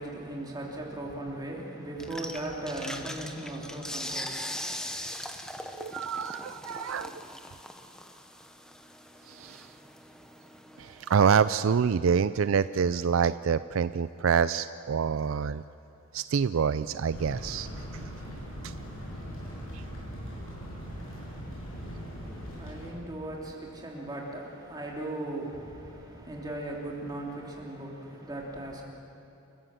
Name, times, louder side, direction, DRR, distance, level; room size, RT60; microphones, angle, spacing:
voice 1, 0.0-4.9 20.9-28.8, right 1 dB, 20° right, -2 dB, 3.1 m, -38 dB
sound 1, 2.0-11.2, left 1 dB, 5° left, 0.9 m, -41 dB
voice 2, 5.8-7.1 9.3-9.7 10.8-15.6 16.1-17.7 18.6-18.7 19.7-19.8, right 6 dB, 65° right, 14 dB, 0.4 m, -26 dB
sound 2, 17.1-22.9, equal, 75° left, 7.1 m, -40 dB
28.5 x 15.0 x 7.6 m, 2.9 s
head